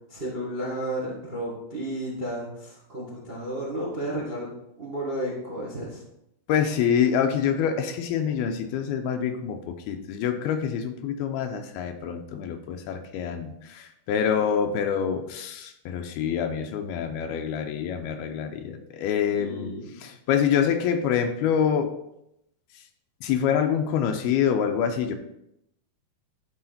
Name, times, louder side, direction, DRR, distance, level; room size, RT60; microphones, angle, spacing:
voice 1, 0.1-4.5 4.8-6.0 19.3-20.0, right 1 dB, 30° right, -4 dB, 1.1 m, -32 dB
voice 2, 6.5-19.7 20.0-21.9 23.2-25.2, left 8 dB, 80° left, 6 dB, 2.6 m, -26 dB
12.0 x 4.9 x 4.3 m, 0.81 s
omnidirectional pair, 4.6 m